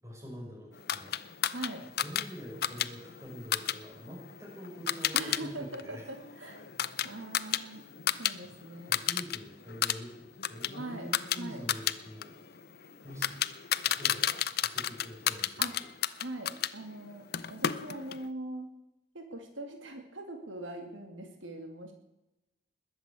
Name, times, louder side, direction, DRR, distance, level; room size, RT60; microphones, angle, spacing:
voice 1, 0.0-1.5 2.0-6.0 7.5-7.8 8.4-12.7 13.0-13.4 13.9-14.3 14.6-15.9, equal, 15° right, -2 dB, 5.8 m, -46 dB
sound 1, 0.9-5.4 5.7-8.4 8.6-9.4 9.7-16.7 17.3-18.2, left 10 dB, 50° left, 0.6 m, -32 dB
voice 2, 1.5-1.8 5.1-6.6 7.0-7.8 8.2-9.0 10.7-11.1 11.4-11.6 15.6-15.7 16.2-18.7 19.1-21.9, right 1 dB, 80° right, 4 dB, 2.3 m, -41 dB
20.5 x 8.1 x 8.4 m, 0.93 s
head